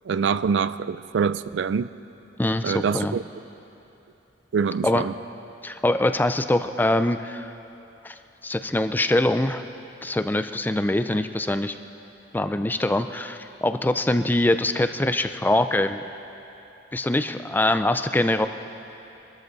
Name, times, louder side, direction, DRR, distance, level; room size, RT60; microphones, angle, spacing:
voice 1, 0.1-1.9 2.6-3.2 4.5-5.1, right 6 dB, 70° right, 15 dB, 0.4 m, -25 dB
voice 2, 2.4-3.2 4.8-5.0 5.6-7.5 8.0-8.1 8.4-9.6 10.0-11.8 12.3-16.0 16.9-18.5, left 1 dB, 10° left, 9 dB, 0.4 m, -23 dB
25.0 x 13.0 x 4.0 m, 3.0 s
head